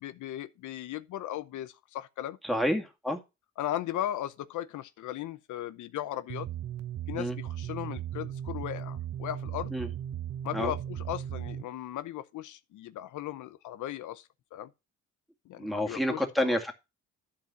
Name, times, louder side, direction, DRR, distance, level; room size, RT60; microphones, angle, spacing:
voice 1, 0.0-2.4 3.6-6.5 7.1-9.7 10.4-14.7 15.5-16.6, left 13 dB, 80° left, 0.8 m, -37 dB
voice 2, 2.4-3.2 7.2-7.4 9.7-9.9 10.5-10.7 15.6-16.7, equal, ahead, 2.2 m, -29 dB
sound 1, 6.3-11.6, right 11 dB, 55° right, 1.1 m, -37 dB
11.5 x 4.9 x 5.8 m
cardioid pair, 90°, 30 cm